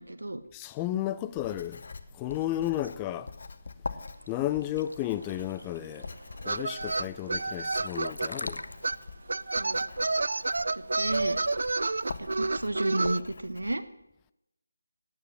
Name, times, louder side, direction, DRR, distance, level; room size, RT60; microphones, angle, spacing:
voice 1, 0.0-0.4 9.6-9.8 10.7-11.4 12.2-13.8, right 2 dB, 80° right, 1.3 m, -32 dB
voice 2, 0.5-1.8 2.1-3.3 4.3-6.1 6.4-8.6, left 13 dB, 15° left, 0.4 m, -33 dB
Writing, 1.3-13.7, left 4 dB, 50° left, 1.0 m, -44 dB
sound 1, 4.0-11.7, left 1 dB, 85° left, 0.7 m, -45 dB
sound 2, 4.7-4.8 5.0-8.3 8.8-9.0 9.3-13.2, right 3 dB, 65° right, 0.4 m, -30 dB
12.0 x 9.5 x 7.5 m
figure-of-eight pair, 160°, 0 cm